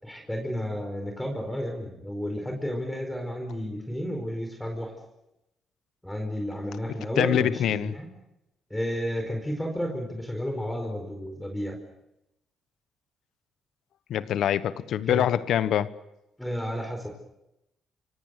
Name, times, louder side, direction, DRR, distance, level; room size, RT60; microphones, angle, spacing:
voice 1, 0.0-4.9 6.0-8.1 8.7-11.8 15.1-15.3 16.4-17.1, equal, 5° left, 4.8 m, -32 dB
voice 2, 7.2-7.9 14.1-15.9, left 10 dB, 75° left, 1.1 m, -24 dB
27.5 x 24.5 x 6.7 m
cardioid pair, 90°, 0 cm